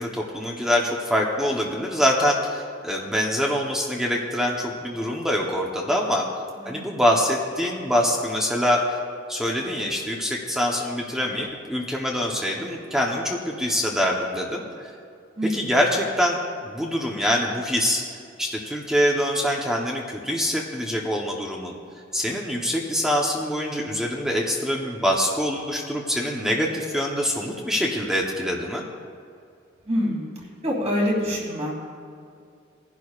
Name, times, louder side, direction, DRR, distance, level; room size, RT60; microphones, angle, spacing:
voice 1, 0.0-6.3 6.6-8.8 9.3-14.9 15.4-16.4 16.6-18.1 18.4-21.7 22.1-28.8, equal, 5° right, -1 dB, 0.9 m, -24 dB
voice 2, 6.6-7.0 15.4-15.7 29.9-30.3 30.6-31.7, equal, 35° right, -3 dB, 2.9 m, -26 dB
19.5 x 11.0 x 2.4 m, 2.3 s
head